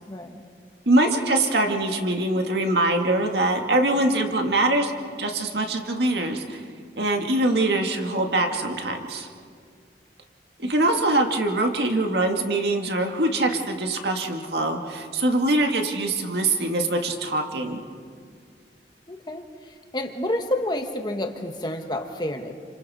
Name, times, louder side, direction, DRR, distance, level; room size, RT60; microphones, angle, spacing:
voice 1, 0.1-0.4 10.6-10.7 19.1-22.5, left 1 dB, 25° left, 4 dB, 1.5 m, -29 dB
voice 2, 0.9-4.9 5.2-6.6 7.0-9.3 10.6-17.8, right 2 dB, 65° right, 3 dB, 2.1 m, -23 dB
30.0 x 26.5 x 4.3 m, 2.1 s
head